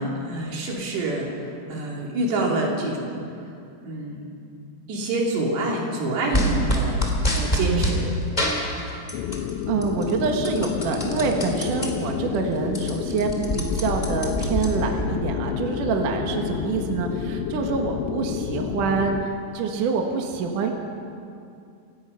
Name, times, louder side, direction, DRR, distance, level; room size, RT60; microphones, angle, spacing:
voice 1, 0.0-3.2 3.8-4.3 4.9-7.1 7.3-8.1, right 2 dB, 75° right, -2 dB, 5.2 m, -26 dB
sound 1, 6.3-8.0 8.4-9.5 9.8-11.9 12.3-12.4 12.6-15.1, equal, 15° left, 2.0 m, -25 dB
sound 2, 9.1-19.2, left 9 dB, 80° left, 2.9 m, -29 dB
voice 2, 9.7-20.7, right 5 dB, 60° right, 2 dB, 2.6 m, -26 dB
28.5 x 16.0 x 5.7 m, 2.5 s
omnidirectional pair, 4.9 m